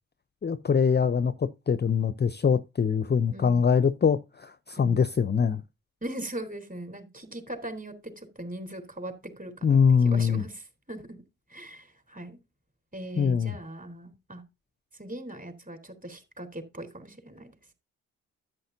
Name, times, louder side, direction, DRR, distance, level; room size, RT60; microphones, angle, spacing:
voice 1, 0.4-5.6 9.6-10.4 13.2-13.6, left 6 dB, 25° left, 0.7 m, -23 dB
voice 2, 3.3-3.6 4.8-5.0 6.0-9.8 10.0-10.6 10.9-11.2 11.5-12.4 12.9-14.4 15.0-17.5, right 1 dB, 20° right, 3.7 m, -40 dB
12.5 x 7.8 x 2.7 m
hypercardioid pair, 40°, 40 cm